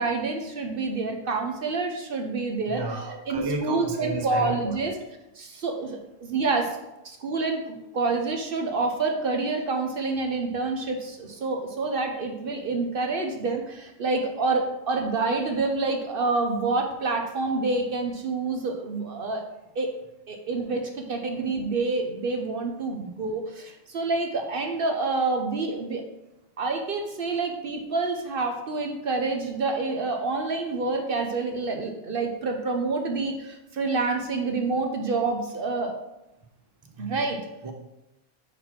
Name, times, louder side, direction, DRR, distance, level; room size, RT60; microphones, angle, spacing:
voice 1, 0.0-5.0 5.4-6.8 7.0-19.5 19.7-19.9 20.3-26.0 26.6-35.9 37.0-37.5, right 3 dB, 55° right, 3 dB, 0.8 m, -28 dB
voice 2, 2.7-4.7 37.0-37.1 37.6-37.7, right 3 dB, 25° right, 3 dB, 0.5 m, -32 dB
4.5 x 4.1 x 5.7 m, 0.90 s
omnidirectional pair, 1.3 m